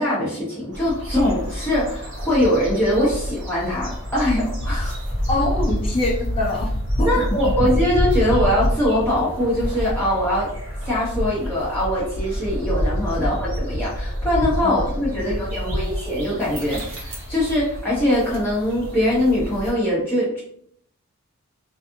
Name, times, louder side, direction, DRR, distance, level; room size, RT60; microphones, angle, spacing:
voice 1, 0.0-5.0 7.0-10.5 10.8-20.4, left 1 dB, 10° left, -9 dB, 1.2 m, -22 dB
sound 1, 0.7-19.7, equal, 55° right, 0.9 m, -27 dB
voice 2, 5.3-6.7 7.0-7.1 7.6-7.7 14.6-14.9 15.1-15.8, left 2 dB, 25° left, -3 dB, 0.5 m, -25 dB
2.6 x 2.5 x 2.5 m, 0.64 s
head